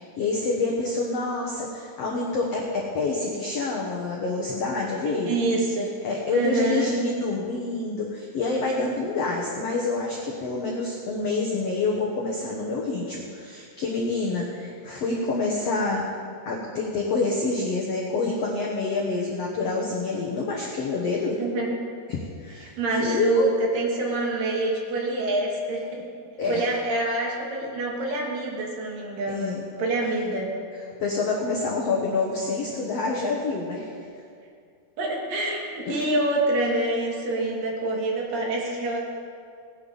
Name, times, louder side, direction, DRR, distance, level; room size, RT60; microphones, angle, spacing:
voice 1, 0.0-5.4 6.0-16.1 16.4-21.4 22.1-22.7 23.0-23.5 26.4-26.6 29.3-29.6 31.0-34.0 35.9-36.1, left 3 dB, 85° left, -2 dB, 1.4 m, -27 dB
voice 2, 5.0-5.9 6.3-6.9 21.4-21.7 22.8-26.0 26.5-30.5 35.0-39.0, right 2 dB, 65° right, -1 dB, 3.1 m, -26 dB
18.5 x 10.5 x 4.0 m, 2.3 s
omnidirectional pair, 4.6 m